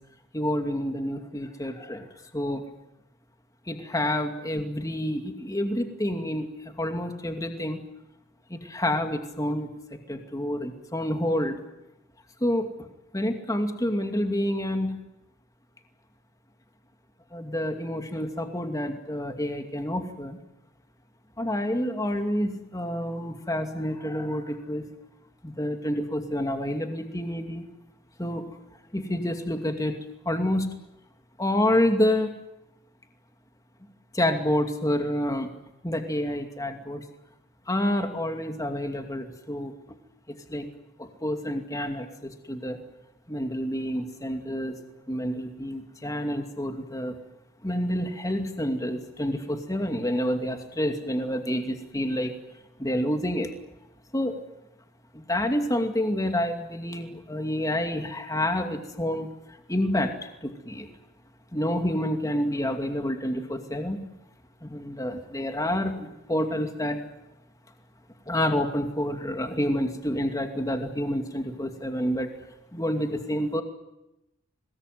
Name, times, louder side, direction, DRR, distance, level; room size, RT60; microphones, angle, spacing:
voice 1, 0.3-2.1 2.3-2.6 3.7-7.8 8.5-11.6 12.4-12.9 13.1-15.0 17.3-20.4 21.4-24.8 25.4-27.6 28.2-28.5 28.9-29.9 30.2-30.7 31.4-32.3 34.1-35.5 35.8-37.0 37.7-39.7 40.3-40.7 41.0-42.8 43.3-44.8 45.1-47.1 47.6-52.3 52.8-53.5 54.1-54.4 55.1-59.3 59.7-60.9 61.5-64.0 64.6-67.0 68.3-72.3 72.7-73.6, left 1 dB, 15° left, 5 dB, 2.5 m, -28 dB
25.5 x 20.0 x 9.6 m, 0.90 s
head